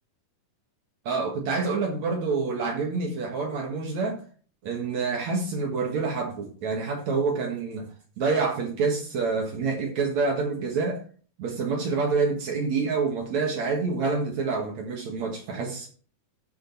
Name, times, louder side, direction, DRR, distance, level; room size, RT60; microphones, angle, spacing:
voice 1, 1.1-4.2 4.6-7.9 8.2-11.0 11.4-15.9, right 4 dB, 55° right, 2.4 m, -27 dB
13.0 x 5.1 x 4.0 m
omnidirectional pair, 4.6 m